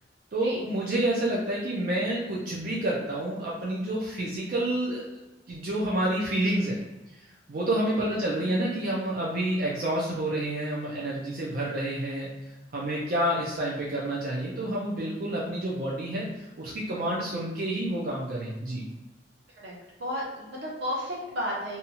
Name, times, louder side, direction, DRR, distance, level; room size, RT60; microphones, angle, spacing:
voice 1, 0.3-5.2 5.5-6.8 7.1-12.3 12.7-18.8, right 1 dB, 55° right, -4 dB, 0.4 m, -29 dB
voice 2, 19.5-21.8, equal, 75° right, -4 dB, 0.9 m, -33 dB
2.7 x 2.3 x 2.8 m, 1.0 s
head